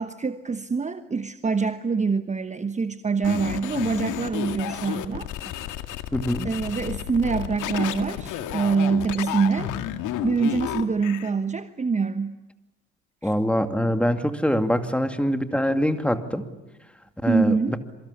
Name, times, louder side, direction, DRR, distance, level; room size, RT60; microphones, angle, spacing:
voice 1, 0.0-5.3 6.4-9.7 10.2-12.4 13.2-13.3 17.3-17.8, right 5 dB, 20° right, 11 dB, 1.2 m, -25 dB
sound 1, 3.2-11.3, left 11 dB, 55° left, 2.0 m, -32 dB
voice 2, 6.1-6.5 13.2-16.5 17.2-17.8, equal, 5° left, 7 dB, 2.3 m, -24 dB
27.0 x 24.5 x 8.5 m, 1.0 s
figure-of-eight pair, 55°, 36 cm